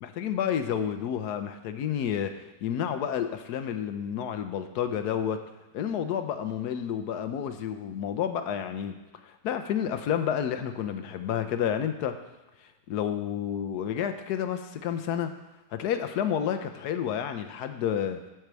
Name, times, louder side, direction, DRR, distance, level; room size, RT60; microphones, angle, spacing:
voice 1, 0.0-5.4 5.7-9.0 9.2-12.2 12.9-15.3 15.7-18.2, left 9 dB, 75° left, 8 dB, 1.2 m, -30 dB
9.4 x 4.7 x 6.8 m, 1.1 s
omnidirectional pair, 1.8 m